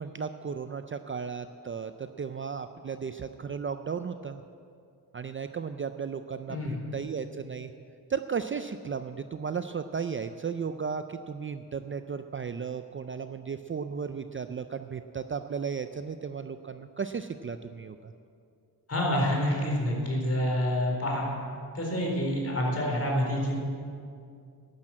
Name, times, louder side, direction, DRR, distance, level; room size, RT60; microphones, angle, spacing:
voice 1, 0.0-4.4 5.1-7.7 8.1-18.1, right 6 dB, 35° right, 9 dB, 0.4 m, -35 dB
voice 2, 6.5-6.8 18.9-21.3 21.7-23.6, equal, 40° left, -1 dB, 4.1 m, -27 dB
12.0 x 10.5 x 7.6 m, 2.4 s
wide cardioid pair, 110°, 39 cm